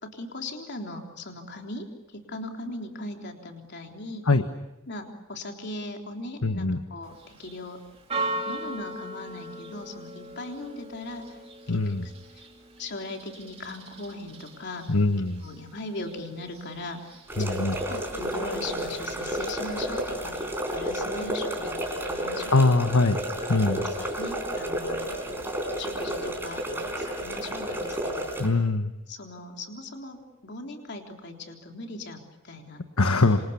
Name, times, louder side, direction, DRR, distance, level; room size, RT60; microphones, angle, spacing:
voice 1, 0.0-4.3 4.9-7.8 8.2-11.4 11.7-12.5 12.8-15.0 15.4-17.1 17.4-20.4 20.7-22.9 23.5-25.5 25.8-28.6 29.1-32.8, left 2 dB, 50° left, 3 dB, 3.7 m, -39 dB
voice 2, 6.4-6.8 11.7-12.0 14.9-15.4 17.4-17.8 22.5-23.2 23.5-23.8 28.4-28.9 33.0-33.4, left 3 dB, 85° left, 8 dB, 1.4 m, -22 dB
Church bell, 7.0-20.9, right 2 dB, 30° right, 3.1 m, -40 dB
sound 1, 17.3-28.5, right 1 dB, 10° right, 4.8 m, -31 dB
27.5 x 27.0 x 7.1 m, 0.93 s
head